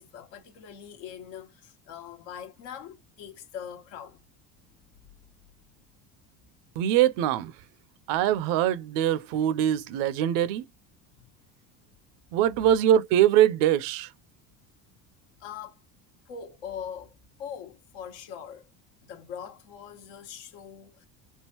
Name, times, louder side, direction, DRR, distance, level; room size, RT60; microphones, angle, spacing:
voice 1, 0.0-4.2 11.2-11.3 15.4-15.8 16.3-18.7 19.1-21.1, left 8 dB, 80° left, 1.2 m, -42 dB
voice 2, 6.8-7.5 8.1-10.6 12.3-14.1, right 11 dB, 80° right, 0.6 m, -23 dB
3.7 x 2.4 x 2.7 m
supercardioid pair, 100°, 37 cm